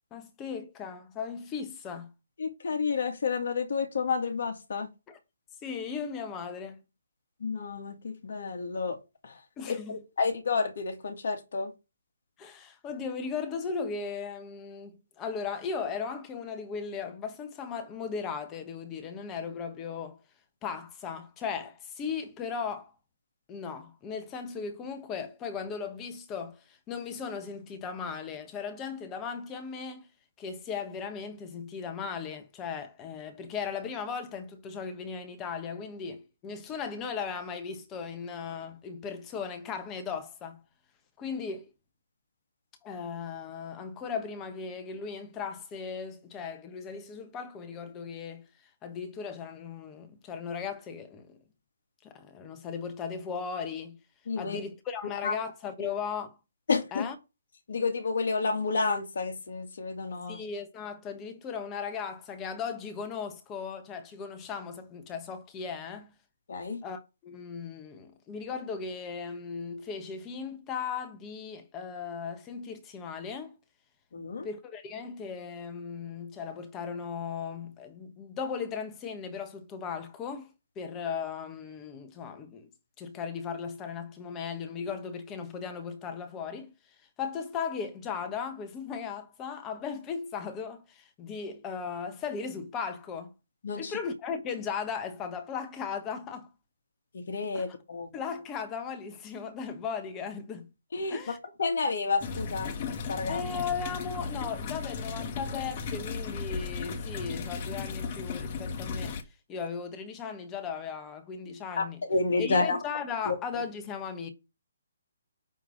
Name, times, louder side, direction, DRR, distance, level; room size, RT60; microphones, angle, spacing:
voice 1, 0.1-2.1 5.1-5.2 5.6-6.8 9.6-10.0 12.4-20.2 20.6-22.9 23.5-30.1 30.4-40.6 41.2-41.7 42.8-51.4 52.0-54.0 54.4-56.3 56.9-57.1 60.3-66.1 66.8-73.6 74.4-80.5 80.8-82.7 83.0-86.7 87.2-93.3 93.8-96.5 97.5-97.8 98.1-100.7 101.1-101.4 103.3-109.2 109.5-112.0 112.4-114.3, left 6 dB, 15° left, 1.2 m, -37 dB
voice 2, 2.4-4.9 7.4-9.0 9.2-9.4 9.7-11.7 54.3-54.6 55.2-55.3 56.7-57.1 57.7-60.4 66.5-66.8 74.1-74.5 93.6-93.9 97.1-98.1 100.9-102.7 103.1-103.4 111.8-112.8 113.3-113.4, left 4 dB, 60° left, 2.2 m, -30 dB
sound 1, 102.2-109.2, left 5 dB, 35° left, 1.2 m, -35 dB
9.1 x 3.4 x 6.4 m
hypercardioid pair, 155°, 0 cm